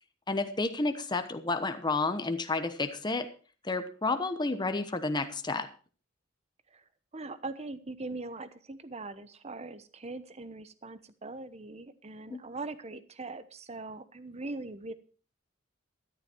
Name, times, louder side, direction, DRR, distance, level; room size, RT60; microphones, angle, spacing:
voice 1, 0.3-3.3 3.6-5.7 12.3-12.4, left 3 dB, 25° left, 8 dB, 1.1 m, -31 dB
voice 2, 7.1-14.9, right 3 dB, 35° right, 13 dB, 1.0 m, -41 dB
13.0 x 11.0 x 4.5 m, 0.38 s
head